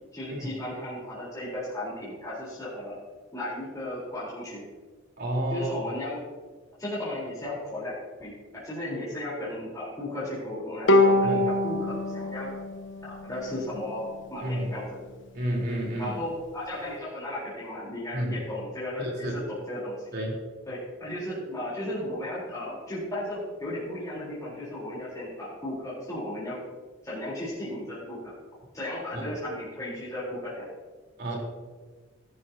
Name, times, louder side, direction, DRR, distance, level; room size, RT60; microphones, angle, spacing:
voice 1, 0.1-3.0 3.3-4.6 5.5-6.2 6.8-7.9 8.2-8.3 8.6-12.5 13.1-14.9 16.0-20.1 20.7-26.6 27.0-28.2 28.7-30.7, left 1 dB, 20° left, -10 dB, 3.7 m, -35 dB
voice 2, 5.2-5.9 11.2-11.4 14.4-14.7 15.3-16.2 18.1-18.4 19.0-19.4 20.1-20.3 29.1-29.2 31.2-31.3, right 1 dB, 55° right, -2 dB, 3.7 m, -30 dB
Bowed string instrument, 10.9-14.2, left 2 dB, 65° left, 1.0 m, -25 dB
18.5 x 11.0 x 2.8 m, 1.4 s
head